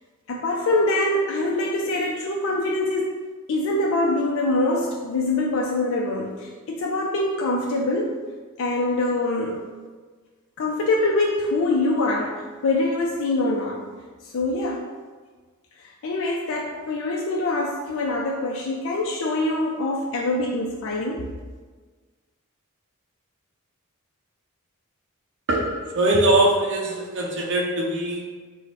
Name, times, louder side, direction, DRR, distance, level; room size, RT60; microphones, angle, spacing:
voice 1, 0.3-3.2 3.5-8.2 8.6-9.6 10.6-13.9 14.2-14.9 15.8-21.3, left 2 dB, 60° left, -1 dB, 0.4 m, -24 dB
voice 2, 25.5-28.3, right 1 dB, 55° right, -2 dB, 0.6 m, -22 dB
4.5 x 2.1 x 4.1 m, 1.4 s
head